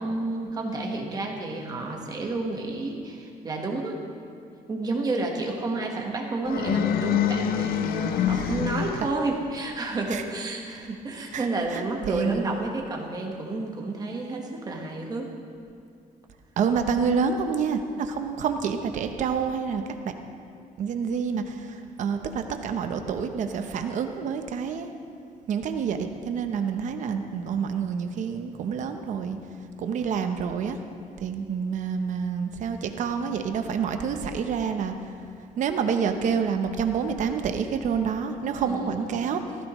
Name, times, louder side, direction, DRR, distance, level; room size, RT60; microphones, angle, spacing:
voice 1, 0.0-4.0 4.7-15.3 38.6-39.1, right 2 dB, 25° right, 1 dB, 1.4 m, -30 dB
sound 1, 6.4-9.3, left 10 dB, 80° left, 0.5 m, -26 dB
voice 2, 11.3-12.6 16.6-20.1 20.8-24.9 25.5-26.0 26.2-29.4 29.8-30.8 31.2-34.9 35.6-39.4, right 6 dB, 55° right, 6 dB, 0.8 m, -28 dB
16.0 x 15.0 x 3.1 m, 2.4 s
cardioid pair, 175°, 15 cm